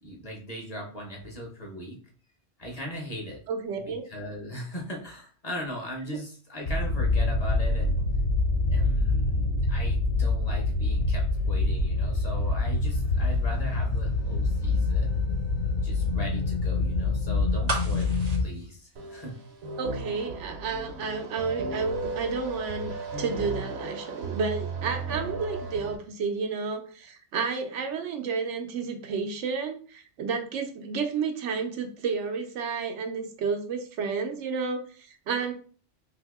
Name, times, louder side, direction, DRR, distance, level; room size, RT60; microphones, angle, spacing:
voice 1, 0.0-2.0 2.6-3.4 3.8-8.1 8.7-15.2 15.8-19.4, equal, 40° left, 0 dB, 0.8 m, -39 dB
voice 2, 3.5-4.0 19.8-35.5, right 5 dB, 90° right, 5 dB, 0.9 m, -31 dB
sound 1, 6.7-18.4, left 2 dB, 55° left, 1.1 m, -25 dB
sound 2, 17.7-19.7 20.0-20.1, right 2 dB, 45° right, 0.6 m, -34 dB
sound 3, 19.0-26.0, right 3 dB, 65° right, 0.9 m, -35 dB
2.7 x 2.7 x 3.4 m, 0.42 s
omnidirectional pair, 1.2 m